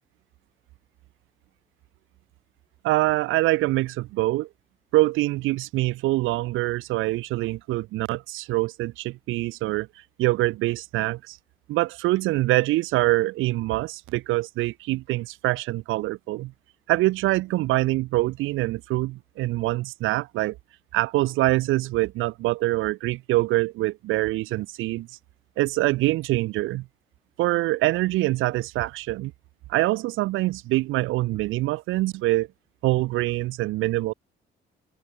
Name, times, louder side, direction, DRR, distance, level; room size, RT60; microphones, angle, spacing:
voice 1, 2.8-4.5 4.9-9.9 10.2-11.4 11.7-16.5 16.9-20.6 20.9-25.1 25.6-26.9 27.4-29.3 29.7-32.5 32.8-34.1, right 18 dB, 85° right, 0.5 m, -24 dB
open air
cardioid pair, 90°, 20 cm